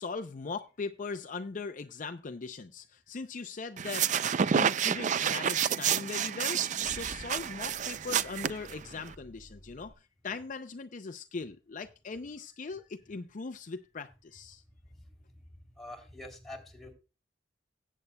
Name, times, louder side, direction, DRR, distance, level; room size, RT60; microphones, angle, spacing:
voice 1, 0.0-4.1 4.4-9.9 10.2-14.6, left 4 dB, 45° left, 8 dB, 0.5 m, -40 dB
sound 1, 3.8-9.1, right 8 dB, 45° right, 0.4 m, -29 dB
Car / Engine starting / Idling, 6.7-9.9, left 1 dB, 30° left, 1.3 m, -52 dB
voice 2, 15.7-16.9, left 1 dB, ahead, 0 dB, 3.0 m, -46 dB
17.5 x 8.3 x 2.2 m, 0.31 s
head